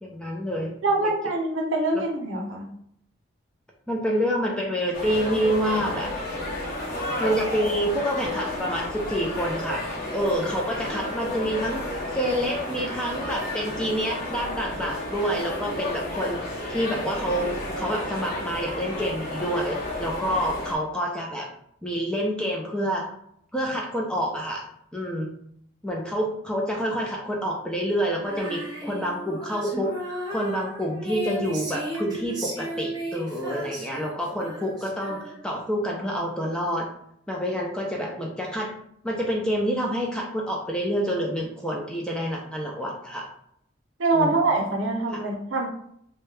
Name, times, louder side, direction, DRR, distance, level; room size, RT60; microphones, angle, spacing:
voice 1, 0.0-0.7 1.9-2.0 3.9-6.1 7.2-9.8 10.1-11.8 12.1-16.4 16.7-17.5 17.8-21.5 21.8-23.1 23.5-24.7 24.9-25.4 25.8-36.9 37.3-38.7 39.0-43.3 44.1-44.4 45.1-45.2, equal, 5° left, -2 dB, 0.4 m, -27 dB
voice 2, 0.8-2.7 44.0-45.7, right 2 dB, 70° right, 1 dB, 0.6 m, -24 dB
sound 1, 4.9-20.7, left 1 dB, 45° left, 0.8 m, -32 dB
Female singing, 28.2-35.6, right 1 dB, 20° right, 0.8 m, -35 dB
2.6 x 2.2 x 3.1 m, 0.70 s
head